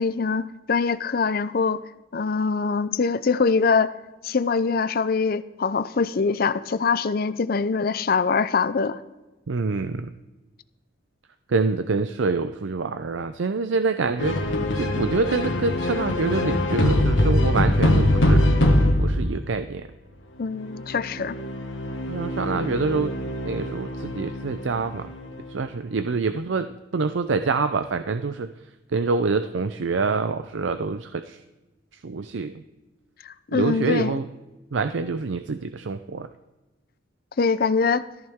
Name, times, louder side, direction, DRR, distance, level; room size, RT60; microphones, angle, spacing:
voice 1, 0.0-1.8 2.1-3.9 4.2-9.0 20.4-21.4 33.2-34.2 37.4-38.0, left 5 dB, 50° left, 15 dB, 0.5 m, -23 dB
voice 2, 9.5-10.1 11.5-14.4 14.8-18.4 19.0-19.9 22.1-23.1 23.4-25.1 25.5-28.5 28.9-31.4 32.0-32.6 33.5-34.3 34.7-36.3, right 4 dB, 75° right, 10 dB, 0.5 m, -26 dB
sound 1, 14.2-19.4 20.6-25.5, left 1 dB, 80° left, 1.6 m, -23 dB
17.0 x 14.0 x 3.6 m, 1.1 s
head